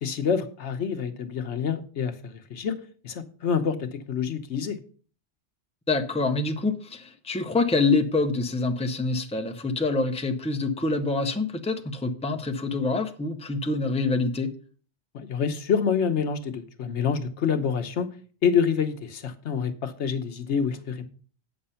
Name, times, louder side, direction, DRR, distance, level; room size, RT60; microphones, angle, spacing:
voice 1, 0.0-2.8 3.0-4.8 15.1-18.1 18.4-21.0, left 6 dB, 80° left, 1.2 m, -27 dB
voice 2, 5.9-14.5, left 3 dB, 5° left, 0.7 m, -26 dB
8.6 x 6.7 x 5.6 m
omnidirectional pair, 1.2 m